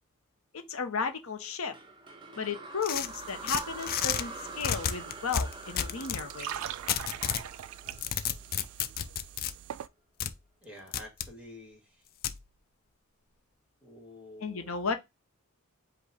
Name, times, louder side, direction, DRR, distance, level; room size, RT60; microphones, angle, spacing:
voice 1, 0.5-1.7 2.4-6.6 14.4-15.0, left 5 dB, 85° left, 0.8 m, -34 dB
sound 1, 1.7-8.9, right 2 dB, 25° right, 0.7 m, -45 dB
sound 2, 2.8-4.2 4.6-6.2 6.9-7.5 7.9-9.5 10.2-10.3 10.9-11.3 12.2-12.4, left 9 dB, 45° left, 0.4 m, -31 dB
sound 3, 2.9-9.9, right 10 dB, 80° right, 0.3 m, -44 dB
voice 2, 10.6-12.0 13.8-14.7, left 1 dB, 5° right, 1.7 m, -49 dB
5.1 x 2.3 x 3.9 m
head